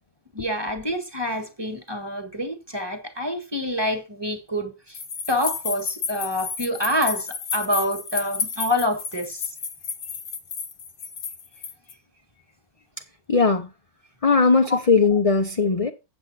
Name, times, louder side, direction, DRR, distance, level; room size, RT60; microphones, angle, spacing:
voice 1, 0.3-5.0 5.3-9.5 14.7-14.8, left 1 dB, 15° right, 1.5 m, -27 dB
sound 1, 4.9-11.9, left 6 dB, 90° left, 1.7 m, -32 dB
voice 2, 13.3-13.7 14.2-15.9, left 4 dB, 35° left, 0.6 m, -19 dB
8.1 x 7.9 x 4.0 m
omnidirectional pair, 1.6 m